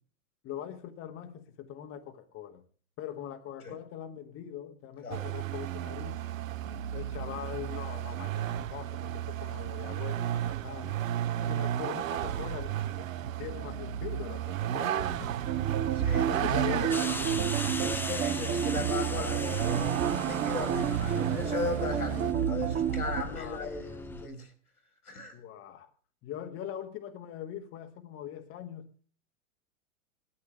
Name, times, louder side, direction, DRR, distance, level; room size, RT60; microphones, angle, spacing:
voice 1, 0.4-2.6 3.0-6.2 6.9-11.0 11.4-13.1 13.4-15.4 16.3-17.5 23.2-23.7 25.3-25.9 26.2-28.9, left 10 dB, 30° left, 1.4 m, -42 dB
Vehicle, 5.1-22.3, right 11 dB, 65° right, 1.0 m, -33 dB
sound 1, 15.5-23.2, right 8 dB, 25° right, 1.4 m, -31 dB
voice 2, 15.9-16.9 17.8-24.5 25.1-25.4, left 4 dB, 85° left, 3.6 m, -37 dB
sound 2, 16.9-24.3, left 3 dB, 5° left, 0.6 m, -40 dB
19.0 x 13.0 x 3.2 m
hypercardioid pair, 110°, 43 cm